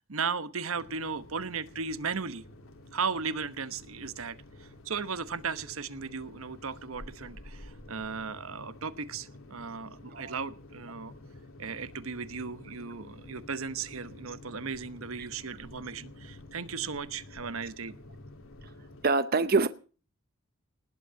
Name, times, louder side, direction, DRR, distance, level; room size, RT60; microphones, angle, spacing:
voice 1, 0.0-2.4 2.9-11.1 11.6-18.0, right 5 dB, 85° right, 1.1 m, -36 dB
sound 1, 0.7-19.1, left 1 dB, 80° left, 3.2 m, -50 dB
voice 2, 19.0-19.7, right 4 dB, 45° right, 0.8 m, -24 dB
19.5 x 8.4 x 7.6 m
head